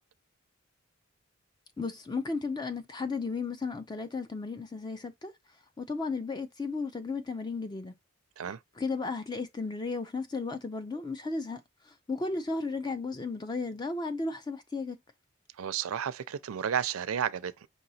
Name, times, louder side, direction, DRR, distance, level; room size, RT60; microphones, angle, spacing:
voice 1, 1.8-5.3 5.8-7.9 8.8-15.0, left 3 dB, 20° left, 0.4 m, -34 dB
voice 2, 15.6-17.7, right 8 dB, 80° right, 0.4 m, -32 dB
5.4 x 2.8 x 2.7 m
head